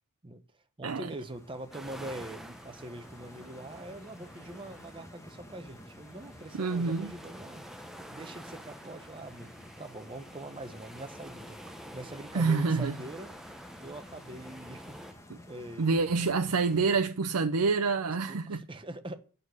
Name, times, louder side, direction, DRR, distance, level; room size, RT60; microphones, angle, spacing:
voice 1, 0.2-7.7 8.1-13.3 13.8-16.0 18.3-19.2, right 1 dB, 20° right, 1.0 m, -44 dB
Stream, 1.0-17.1, left 1 dB, 15° left, 1.2 m, -52 dB
sound 1, 1.7-15.1, equal, ahead, 0.7 m, -49 dB
voice 2, 6.6-7.1 12.3-13.0 15.3-15.4 15.8-18.6, right 4 dB, 85° right, 0.6 m, -27 dB
8.6 x 6.7 x 8.1 m
head